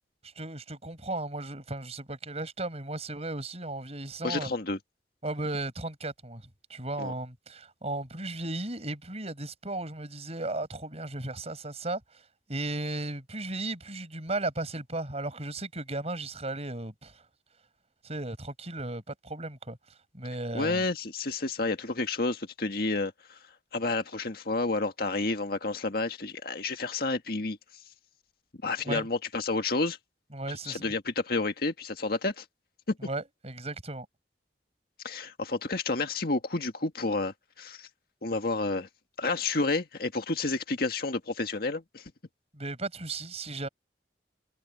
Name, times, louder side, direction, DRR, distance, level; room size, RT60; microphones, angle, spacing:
voice 1, 0.4-4.5 5.2-6.4 6.7-12.0 12.5-17.2 18.0-19.8 20.1-20.8 28.8-29.1 30.3-30.8 33.0-34.1 42.5-43.7, right 2 dB, 35° right, 8.0 m, -35 dB
voice 2, 4.2-4.8 7.0-7.1 20.5-23.4 23.7-27.6 28.6-30.0 30.6-32.5 32.9-33.0 35.0-37.9 38.2-38.9 39.2-42.0, left 3 dB, 60° left, 1.8 m, -30 dB
head